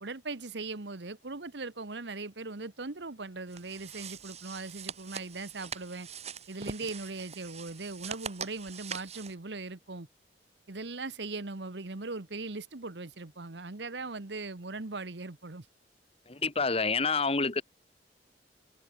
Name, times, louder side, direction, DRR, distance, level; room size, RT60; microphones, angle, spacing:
voice 1, 0.0-6.1 6.5-10.1 10.7-15.6, right 3 dB, 75° right, 1.3 m, -39 dB
sound 1, 3.5-9.3, right 6 dB, 35° right, 6.4 m, -43 dB
voice 2, 16.3-17.6, left 4 dB, 35° left, 1.5 m, -28 dB
head